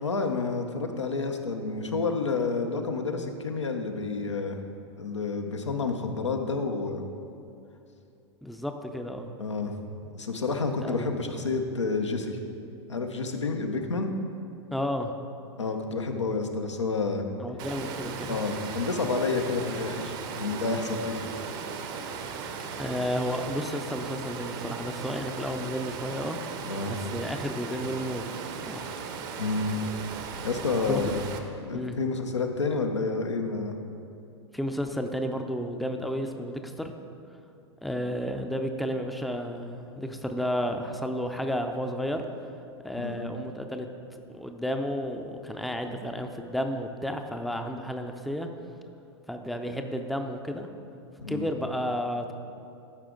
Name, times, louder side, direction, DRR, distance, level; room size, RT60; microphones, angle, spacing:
voice 1, 0.0-4.6 5.0-7.0 9.4-9.7 10.0-12.4 12.9-14.1 15.6-17.2 18.3-21.3 26.6-27.0 29.4-29.8 30.4-31.2 31.6-33.8 43.0-43.2 51.2-51.4, left 4 dB, 90° left, 4 dB, 0.7 m, -29 dB
voice 2, 8.4-9.3 10.8-11.1 14.7-15.1 17.4-18.4 22.8-26.4 26.9-28.2 28.6-28.9 30.9-31.0 31.7-32.0 34.5-36.9 37.8-42.3 42.8-43.9 44.3-48.5 49.3-50.7 51.3-52.3, equal, ahead, 5 dB, 0.5 m, -32 dB
Water, 17.6-31.4, right 6 dB, 50° right, 0.8 m, -37 dB
13.0 x 5.0 x 3.7 m, 2.6 s
hypercardioid pair, 100°, 15 cm